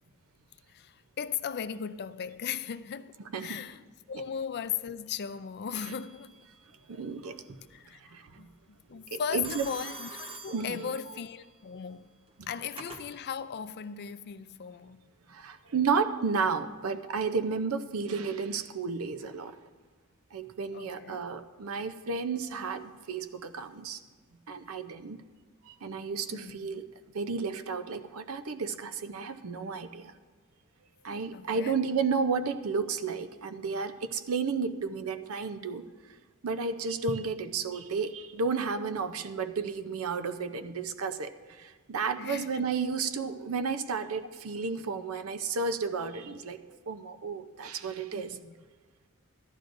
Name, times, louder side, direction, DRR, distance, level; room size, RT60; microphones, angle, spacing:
voice 1, 0.7-6.4 7.7-15.1 20.7-21.2 26.3-26.7 31.3-31.8 42.2-42.7 48.1-48.5, left 8 dB, 50° left, 0.4 m, -38 dB
Telephone, 5.8-6.4 9.4-11.3 12.3-13.1, right 2 dB, 25° right, 1.1 m, -44 dB
voice 2, 6.9-7.5 8.1-8.5 9.1-9.7 10.5-10.9 12.4-12.5 15.3-19.6 20.3-24.0 24.5-25.2 25.7-26.9 27.1-30.1 31.0-35.8 36.4-41.3 41.6-48.4, right 5 dB, 90° right, 0.6 m, -32 dB
14.5 x 11.5 x 2.6 m
head